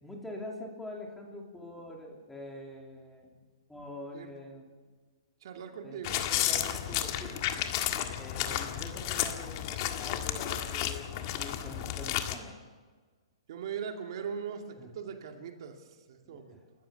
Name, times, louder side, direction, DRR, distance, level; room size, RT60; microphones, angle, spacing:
voice 1, 0.0-3.4 3.7-4.7 5.8-6.0 6.3-7.5 8.2-12.6 14.8-14.9 16.2-16.6, left 1 dB, 5° left, 0 dB, 3.1 m, -45 dB
voice 2, 5.4-6.8 13.5-16.6, right 7 dB, 55° right, 4 dB, 2.4 m, -40 dB
sound 1, 6.0-12.4, left 11 dB, 40° left, 1.7 m, -32 dB
30.0 x 14.0 x 7.0 m, 1.4 s
hypercardioid pair, 150°, 3 cm